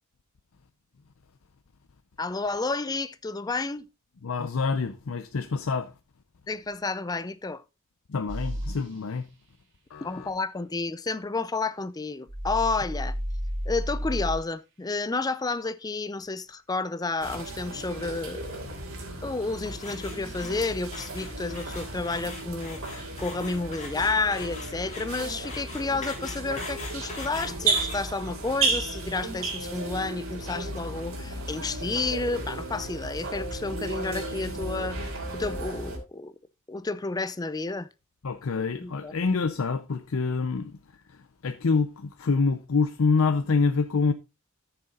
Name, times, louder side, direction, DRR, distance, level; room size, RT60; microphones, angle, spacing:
voice 1, 2.2-3.9 6.5-7.6 10.0-13.2 13.7-18.6 19.2-36.3 36.7-37.9 38.8-39.1, left 3 dB, 20° left, 0.4 m, -31 dB
voice 2, 4.2-5.9 8.1-9.3 9.9-10.3 38.2-40.8 41.4-44.1, left 4 dB, 85° left, 0.6 m, -26 dB
sound 1, 8.3-8.8 12.3-14.4, equal, 60° right, 3.1 m, -31 dB
sound 2, 17.2-36.0, right 3 dB, 85° right, 3.1 m, -34 dB
sound 3, 19.8-28.0, left 3 dB, 35° left, 3.3 m, -41 dB
14.0 x 6.8 x 2.4 m
head